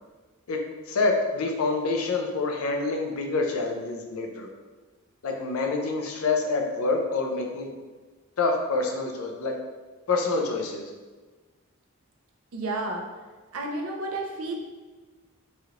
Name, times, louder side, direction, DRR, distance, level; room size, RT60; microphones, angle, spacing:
voice 1, 0.9-4.5 5.2-7.7 8.4-9.6 10.1-10.8, left 3 dB, 75° left, 2 dB, 0.5 m, -27 dB
voice 2, 12.5-13.1 13.5-14.6, right 2 dB, 80° right, 1 dB, 0.5 m, -31 dB
3.1 x 2.4 x 2.8 m, 1.3 s
head